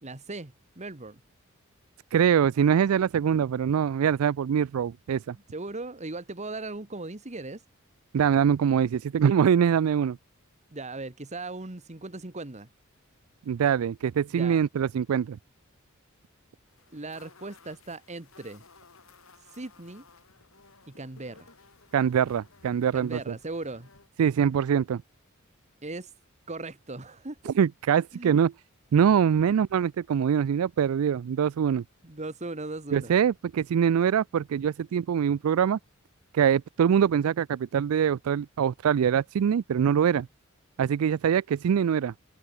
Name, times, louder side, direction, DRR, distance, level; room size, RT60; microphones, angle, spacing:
voice 1, 0.0-1.2 5.5-7.6 10.7-12.7 14.3-14.6 16.9-18.6 19.5-20.0 20.9-21.5 22.9-23.9 25.8-26.1 26.5-27.4 28.1-28.3 32.0-33.1, right 2 dB, 35° right, 1.5 m, -38 dB
voice 2, 2.1-5.4 8.1-10.2 13.5-15.4 21.9-23.3 24.2-25.0 27.6-28.5 28.9-31.8 32.9-35.8 36.3-40.3 40.8-42.1, right 8 dB, 90° right, 0.4 m, -23 dB
sound 1, 16.7-24.1, left 4 dB, 70° left, 5.4 m, -57 dB
head